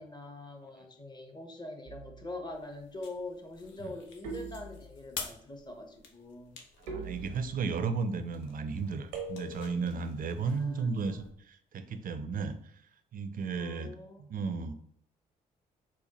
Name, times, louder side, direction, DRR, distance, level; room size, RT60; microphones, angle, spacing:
voice 1, 0.0-6.6 10.4-11.3 13.5-14.2, left 2 dB, 20° left, 5 dB, 0.9 m, -44 dB
sound 1, 1.8-2.4 4.2-5.2 6.9-7.8 9.1-9.8, right 3 dB, 90° right, 0.7 m, -42 dB
sound 2, 2.5-11.3, left 5 dB, 75° left, 0.7 m, -49 dB
voice 2, 6.8-12.7 13.1-13.9 14.2-14.7, right 5 dB, 45° right, 9 dB, 0.5 m, -34 dB
4.2 x 2.2 x 2.9 m, 0.65 s
hypercardioid pair, 50°, 19 cm